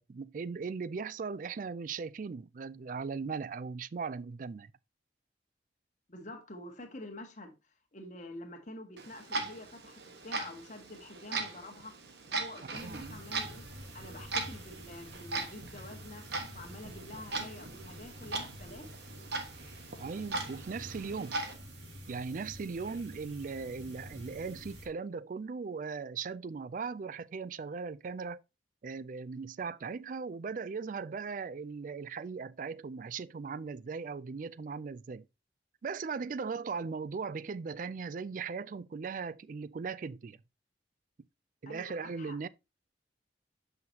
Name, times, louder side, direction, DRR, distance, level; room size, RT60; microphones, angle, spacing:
voice 1, 0.0-4.7 12.6-13.2 20.0-21.4 22.1-28.4 28.8-35.2 35.8-40.4 41.6-42.5, right 5 dB, 45° right, 0.4 m, -38 dB
voice 2, 6.1-7.5 7.9-11.9 12.3-13.7 13.9-16.2 16.5-18.9 41.7-42.4, left 1 dB, 45° left, 1.4 m, -47 dB
Clock, 9.0-21.5, right 3 dB, 65° right, 1.3 m, -40 dB
sound 1, 12.7-24.9, equal, 80° right, 2.4 m, -49 dB
7.7 x 5.7 x 2.8 m
head